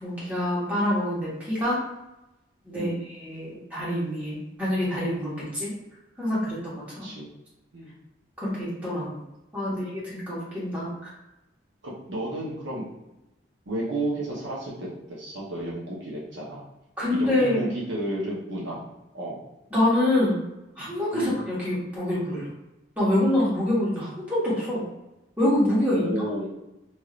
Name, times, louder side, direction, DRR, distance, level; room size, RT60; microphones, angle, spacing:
voice 1, 0.0-1.8 2.6-5.7 6.2-7.1 8.4-9.2 9.5-10.9 17.0-17.7 19.7-20.5 20.8-22.5 23.0-24.8 25.4-26.1, left 1 dB, 10° right, -9 dB, 1.3 m, -26 dB
voice 2, 2.7-3.1 7.0-7.3 7.7-7.9 9.6-9.8 10.7-10.9 11.8-12.8 13.7-16.6 17.1-18.8 19.1-19.4 21.1-21.4 26.0-26.5, right 1 dB, 75° right, -5 dB, 0.9 m, -32 dB
3.1 x 2.7 x 2.4 m, 0.95 s
head